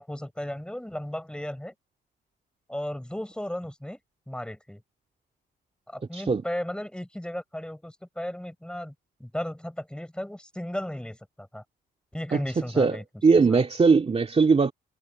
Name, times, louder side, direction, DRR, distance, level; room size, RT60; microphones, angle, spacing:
voice 1, 0.0-1.7 2.7-4.0 4.3-4.8 5.9-8.9 9.2-11.6 12.1-13.0 13.5-13.6, left 1 dB, 5° left, 6.2 m, -35 dB
voice 2, 12.8-14.7, right 4 dB, 30° right, 2.5 m, -20 dB
cardioid pair, 90°, 20 cm